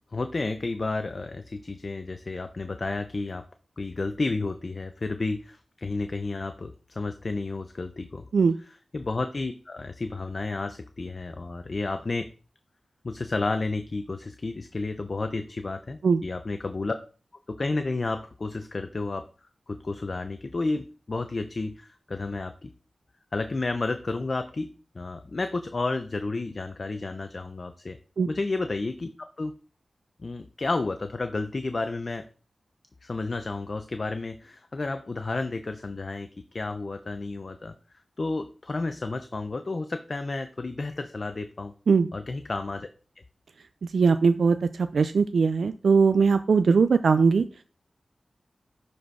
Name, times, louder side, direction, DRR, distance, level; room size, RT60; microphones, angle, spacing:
voice 1, 0.1-3.4 3.8-8.2 8.7-12.3 13.0-16.9 17.5-19.3 19.7-22.7 23.3-28.0 28.3-29.5 30.2-32.3 33.0-37.7 38.2-41.7 42.1-42.9, left 3 dB, 50° left, 8 dB, 0.7 m, -31 dB
voice 2, 43.9-47.4, right 5 dB, 85° right, 10 dB, 0.4 m, -20 dB
11.5 x 4.2 x 4.6 m, 0.38 s
wide cardioid pair, 75°, 0 cm